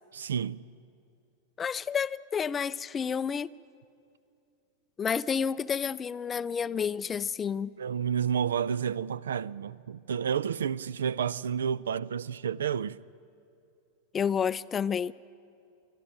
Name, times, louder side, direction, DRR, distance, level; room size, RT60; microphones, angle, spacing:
voice 1, 0.1-0.6 7.8-13.0, right 8 dB, 65° right, 0.4 m, -30 dB
voice 2, 1.6-3.5 5.0-7.7 14.1-15.1, left 7 dB, 20° left, 0.4 m, -30 dB
26.0 x 12.0 x 9.2 m
figure-of-eight pair, 90°, 0 cm